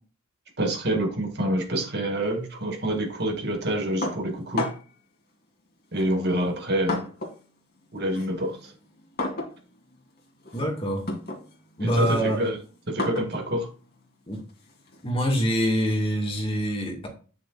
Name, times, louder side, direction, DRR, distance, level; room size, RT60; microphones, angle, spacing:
voice 1, 0.6-4.7 5.9-7.0 7.9-8.7 11.8-12.6 12.9-13.7, right 1 dB, 50° right, 3 dB, 2.1 m, -27 dB
sound 1, 4.0-5.0 5.9-7.5 7.8-15.1, left 2 dB, 45° left, 2.5 m, -35 dB
voice 2, 10.5-11.0 11.8-12.4 14.3-14.4 15.0-17.1, equal, 25° left, 1 dB, 1.9 m, -25 dB
9.6 x 6.8 x 2.5 m, 0.36 s
head